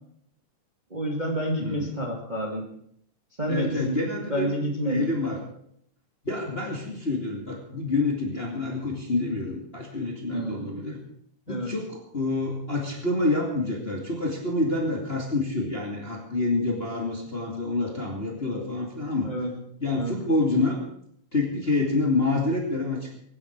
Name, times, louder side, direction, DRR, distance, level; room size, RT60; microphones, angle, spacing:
voice 1, 0.9-2.7 3.4-5.1 10.3-10.9 11.5-11.7 19.2-19.5 19.9-20.2, right 1 dB, 15° right, -1 dB, 2.1 m, -29 dB
voice 2, 3.5-4.5 4.9-5.4 6.2-11.0 11.5-19.3 19.8-20.8 21.3-23.2, left 2 dB, 20° left, -1 dB, 2.2 m, -27 dB
24.0 x 10.0 x 4.7 m, 0.68 s
omnidirectional pair, 3.6 m